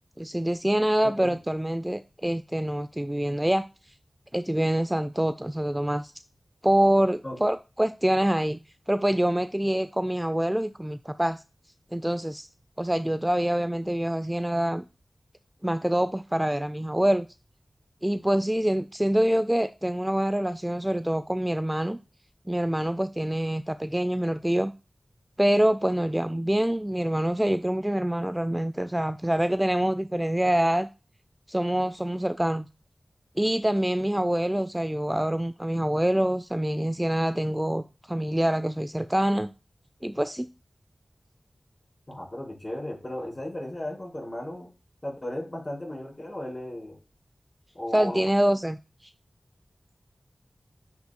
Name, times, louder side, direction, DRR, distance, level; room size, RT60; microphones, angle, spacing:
voice 1, 0.2-3.6 4.3-6.1 6.6-8.6 8.9-11.4 11.9-12.5 12.8-14.8 15.6-17.3 18.0-22.0 22.5-24.7 25.4-30.9 31.5-32.7 33.4-39.5 40.0-40.5 47.9-48.8, right 1 dB, 10° right, 0.3 m, -25 dB
voice 2, 1.0-1.4 7.2-7.5 42.1-44.7 45.0-47.0 47.7-48.3, left 1 dB, 30° left, 4.1 m, -35 dB
10.0 x 5.8 x 2.2 m
wide cardioid pair, 65°, 0 cm